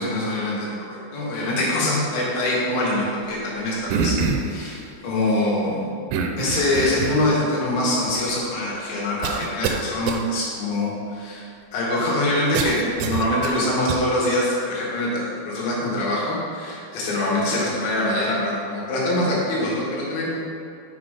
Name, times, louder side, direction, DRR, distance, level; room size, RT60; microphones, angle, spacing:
voice 1, 0.0-5.9 6.4-11.5 11.7-20.4, left 1 dB, 80° left, -5 dB, 3.9 m, -24 dB
sound 1, 3.9-4.6 6.1-7.3 8.1-8.2 9.2-9.8 10.1-10.2 12.5-14.0, right 5 dB, 85° right, 2.9 m, -25 dB
6.8 x 6.0 x 4.9 m, 2.4 s
omnidirectional pair, 5.0 m